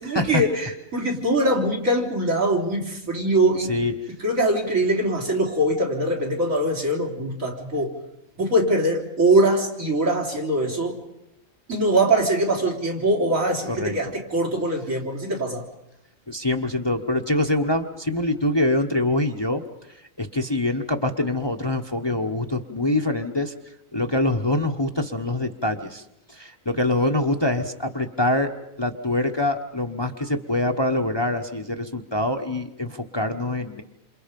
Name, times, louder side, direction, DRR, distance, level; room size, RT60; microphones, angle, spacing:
voice 1, 0.0-3.7 4.2-7.9 8.4-11.0 11.7-15.6, right 1 dB, 75° right, -2 dB, 4.5 m, -22 dB
voice 2, 16.3-19.6 20.2-23.5 23.9-26.0 26.3-28.5 28.8-33.8, left 1 dB, 20° left, 4 dB, 1.1 m, -24 dB
28.5 x 27.5 x 5.3 m, 0.83 s
omnidirectional pair, 1.4 m